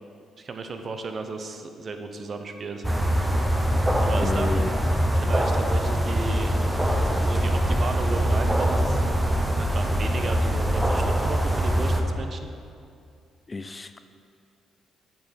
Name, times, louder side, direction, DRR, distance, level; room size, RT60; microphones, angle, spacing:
voice 1, 0.4-3.1 4.0-4.7 5.1-6.6 7.0-9.0 9.6-12.5, right 3 dB, 45° right, 6 dB, 0.8 m, -34 dB
sound 1, 2.8-12.0, equal, 10° right, 0.9 m, -23 dB
voice 2, 4.2-4.7 13.5-14.0, left 3 dB, 25° left, 10 dB, 0.4 m, -31 dB
8.8 x 6.1 x 5.2 m, 2.4 s
cardioid pair, 90°, 0 cm